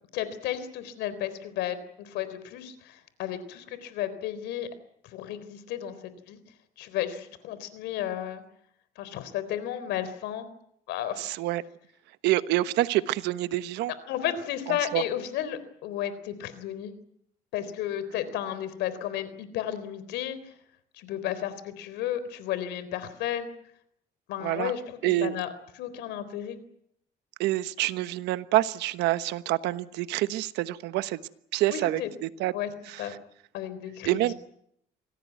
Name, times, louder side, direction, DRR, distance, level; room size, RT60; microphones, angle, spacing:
voice 1, 0.1-4.7 5.0-6.4 6.8-8.4 9.0-10.5 10.9-11.4 14.1-16.9 17.5-20.5 20.9-23.5 24.3-25.5 25.8-26.6 31.7-32.1 32.5-32.7 33.0-33.1 33.5-34.3, left 11 dB, 90° left, 14 dB, 3.8 m, -33 dB
voice 2, 11.2-11.6 12.2-13.9 14.9-15.0 24.4-24.7 25.0-25.4 27.4-31.2 31.5-32.5 34.0-34.3, right 16 dB, 90° right, 14 dB, 1.2 m, -27 dB
25.5 x 18.0 x 9.4 m, 0.72 s
cardioid pair, 110°, 17 cm